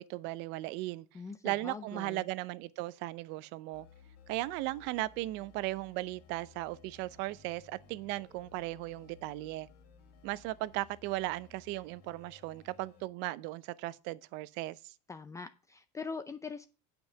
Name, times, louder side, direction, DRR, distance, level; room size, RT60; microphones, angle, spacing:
voice 1, 0.0-1.1 1.4-3.9 4.3-9.7 10.2-14.9, right 18 dB, 60° right, 0.6 m, -37 dB
voice 2, 1.1-2.2 15.1-16.7, left 4 dB, 15° left, 0.5 m, -42 dB
sound 1, 3.7-13.0, left 7 dB, 75° left, 3.2 m, -59 dB
sound 2, 6.0-11.3, right 7 dB, 30° right, 1.6 m, -68 dB
8.9 x 5.4 x 6.8 m
supercardioid pair, 110°, 21 cm